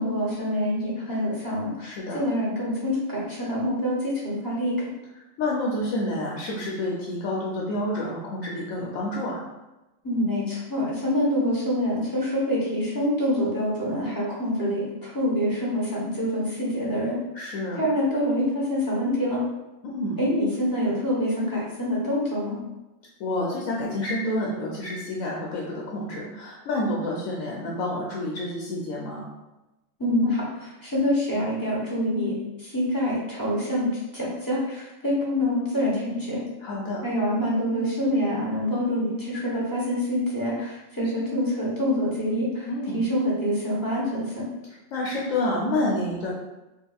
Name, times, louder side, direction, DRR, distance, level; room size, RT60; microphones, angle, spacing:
voice 1, 0.0-4.8 10.0-17.2 17.8-19.4 20.2-22.6 30.0-36.4 37.0-44.5, equal, 20° left, -7 dB, 0.9 m, -26 dB
voice 2, 1.8-2.2 5.4-9.4 17.3-17.8 19.8-20.2 23.2-29.3 36.6-37.0 42.7-43.1 44.6-46.3, left 1 dB, 80° left, -3 dB, 1.0 m, -29 dB
4.5 x 2.4 x 2.3 m, 1.0 s
omnidirectional pair, 1.4 m